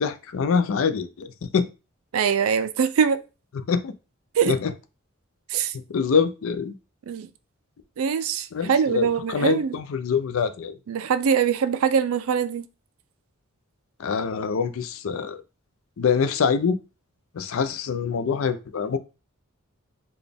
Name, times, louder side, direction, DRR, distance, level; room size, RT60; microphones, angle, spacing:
voice 1, 0.0-1.7 3.7-3.9 4.5-4.7 5.9-6.7 8.5-10.7 14.0-15.4 16.0-16.8 17.3-19.0, left 6 dB, 65° left, 0.4 m, -24 dB
voice 2, 2.1-3.2 4.4-4.6 5.5-5.7 7.1-7.3 8.0-9.8 10.9-12.7, right 7 dB, 70° right, 0.4 m, -23 dB
3.9 x 2.3 x 3.4 m
head